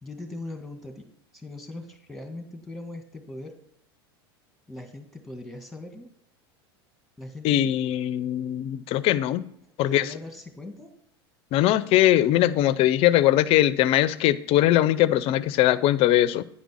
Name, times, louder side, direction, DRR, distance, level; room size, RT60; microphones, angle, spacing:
voice 1, 0.0-1.0 1.3-3.5 4.7-6.1 7.2-7.7 9.8-10.9, left 2 dB, ahead, 5 dB, 1.9 m, -40 dB
voice 2, 7.4-9.4 9.8-10.0 11.5-16.4, left 13 dB, 50° left, 17 dB, 0.6 m, -21 dB
9.9 x 5.2 x 6.4 m, 0.71 s
hypercardioid pair, 100°, 13 cm